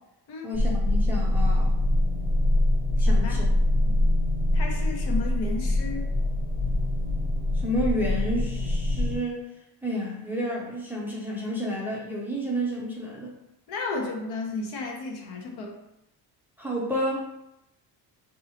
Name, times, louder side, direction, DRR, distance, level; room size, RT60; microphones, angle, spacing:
voice 1, 0.4-1.7 3.0-3.5 3.8-4.0 7.6-9.4 9.8-13.3 16.6-17.3, equal, 5° right, -4 dB, 0.5 m, -30 dB
sound 1, 0.5-9.2, left 1 dB, 20° left, 0.8 m, -24 dB
voice 2, 3.0-3.4 4.5-6.1 13.7-15.8, left 3 dB, 65° left, 1 dB, 0.9 m, -33 dB
4.4 x 2.7 x 2.9 m, 0.86 s
cardioid pair, 150°, 42 cm